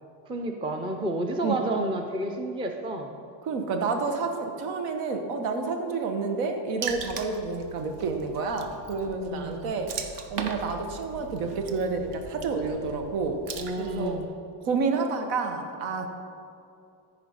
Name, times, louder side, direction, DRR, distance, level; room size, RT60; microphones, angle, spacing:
voice 1, 0.3-3.2 9.2-9.7 13.6-14.3, right 1 dB, 10° right, 4 dB, 0.4 m, -30 dB
voice 2, 3.4-9.9 10.3-13.4 13.8-14.2 14.6-16.1, right 4 dB, 80° right, 5 dB, 1.3 m, -29 dB
Water / Splash splatter, 6.8-14.3, right 6 dB, 55° right, 1.0 m, -39 dB
14.0 x 5.0 x 5.5 m, 2.6 s
cardioid pair, 140°, 50 cm